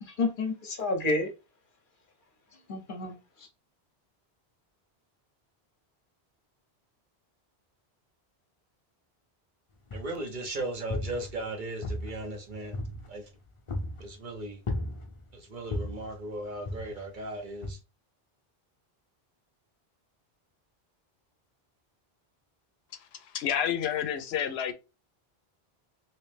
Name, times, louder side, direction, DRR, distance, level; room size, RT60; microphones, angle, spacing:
voice 1, 0.0-1.3 2.7-3.5, left 2 dB, 55° left, 0.9 m, -30 dB
sound 1, 9.9-10.3 10.7-11.5 11.8-13.3 13.7-14.1 14.7-15.3 15.7-16.1 16.6-17.2 17.6-17.7, left 1 dB, 35° left, 0.6 m, -35 dB
voice 2, 9.9-12.8 13.1-13.3 14.0-14.6 15.3-17.8, right 2 dB, 55° right, 0.9 m, -37 dB
voice 3, 22.9-24.7, left 9 dB, 80° left, 0.8 m, -30 dB
3.1 x 2.9 x 3.2 m
omnidirectional pair, 1.1 m